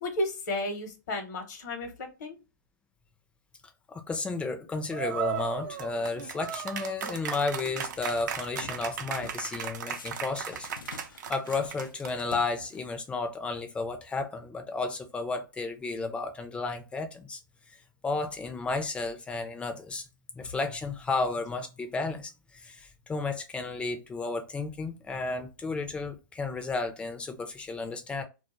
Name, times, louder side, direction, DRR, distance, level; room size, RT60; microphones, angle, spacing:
voice 1, 0.0-2.4, left 1 dB, 60° left, 0.9 m, -33 dB
voice 2, 3.9-10.7 11.3-17.4 18.0-20.0 20.3-28.2, left 3 dB, 10° left, 0.4 m, -33 dB
sound 1, 4.9-12.3, right 8 dB, 65° right, 0.5 m, -36 dB
sound 2, 7.6-8.3 8.6-9.4 9.9-13.1, left 5 dB, 85° left, 0.4 m, -49 dB
2.3 x 2.2 x 3.0 m
hypercardioid pair, 125°, 11 cm